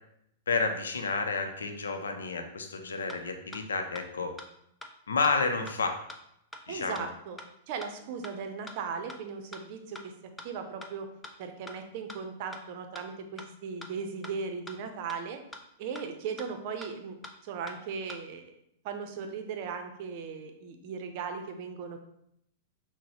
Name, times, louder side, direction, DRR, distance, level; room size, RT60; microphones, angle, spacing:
voice 1, 0.5-4.3 5.1-6.0 6.7-7.1, left 4 dB, 85° left, 6 dB, 0.5 m, -30 dB
sound 1, 3.1-3.2 3.5-3.6 4.0-4.1 4.4-4.5 4.8-4.9 5.2-5.3 5.7-5.8 6.1-6.2 6.5-6.6 6.9-7.0 7.4-7.5 7.8-7.9 8.2-8.3 8.7-8.8 9.1-9.2 9.5-9.6 10.0-10.1 10.4-10.5 10.8-10.9 11.2-11.3 11.7-11.8 12.1-12.2 12.5-12.6 12.9-13.0 13.4-13.5 13.8-13.9 14.2-14.3 14.7-14.8 15.1-15.2 15.5-15.6 15.9-16.0 16.4-16.5 16.8-16.9 17.2-17.3 17.7-17.8 18.1-18.2, left 2 dB, 10° left, 0.4 m, -43 dB
voice 2, 6.7-7.4 7.7-10.1 10.4-11.1 11.4-15.4 15.8-18.5 18.8-22.0, right 5 dB, 55° right, 6 dB, 0.6 m, -37 dB
6.0 x 2.1 x 2.9 m, 0.75 s
hypercardioid pair, 105°, 0 cm